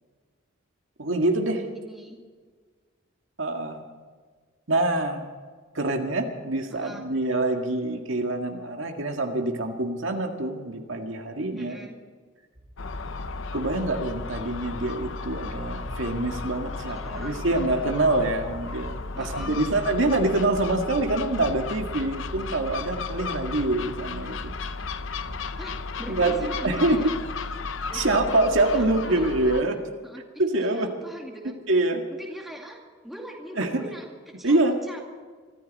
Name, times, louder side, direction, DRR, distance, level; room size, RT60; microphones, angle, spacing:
voice 1, 1.0-1.7 3.4-3.9 4.7-5.2 5.7-11.8 13.5-24.6 26.1-27.0 27.9-29.8 30.4-31.0 31.7-32.0 33.5-33.8 34.4-34.8, right 2 dB, 70° right, 3 dB, 1.9 m, -25 dB
voice 2, 1.8-2.2 6.7-7.0 11.6-11.9 16.9-17.9 19.1-19.9 25.6-27.1 27.9-28.1 28.5-29.5 30.0-30.2 30.7-31.6 32.1-35.0, right 1 dB, ahead, 0 dB, 2.3 m, -41 dB
sound 1, 12.6-26.5, right 1 dB, 35° right, 3.4 m, -45 dB
Gull seagull, 12.8-29.6, left 4 dB, 70° left, 0.8 m, -34 dB
24.5 x 14.0 x 4.2 m, 1.5 s
head